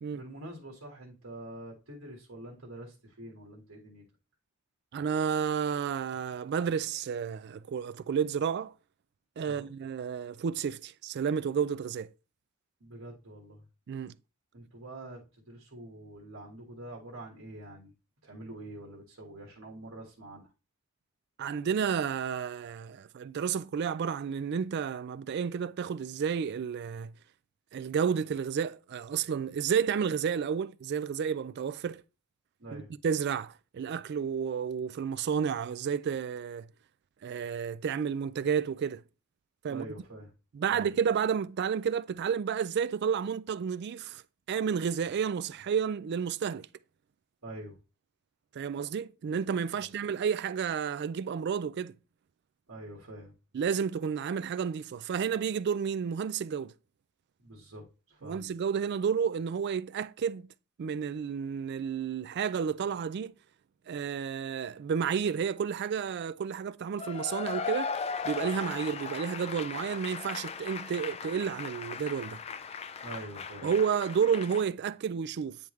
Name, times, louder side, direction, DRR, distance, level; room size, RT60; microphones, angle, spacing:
voice 1, 0.1-4.0 9.5-9.7 12.8-13.6 14.5-17.9 18.2-20.5 32.6-32.9 39.7-40.3 40.7-40.9 47.4-47.8 49.7-49.9 52.7-53.3 57.4-58.5 73.0-73.7, right 1 dB, 85° right, 1.6 m, -45 dB
voice 2, 4.9-8.7 9.4-12.1 13.9-14.1 21.4-27.1 27.7-32.0 32.7-36.7 37.2-39.0 39.6-39.9 40.5-44.2 44.5-46.7 48.5-51.9 53.5-56.7 58.2-60.5 60.8-63.3 63.9-67.9 68.2-72.4 73.6-75.6, right 7 dB, 55° right, 0.3 m, -31 dB
Cheering / Applause / Crowd, 67.0-74.6, left 5 dB, 30° left, 0.3 m, -38 dB
9.2 x 3.5 x 3.1 m
head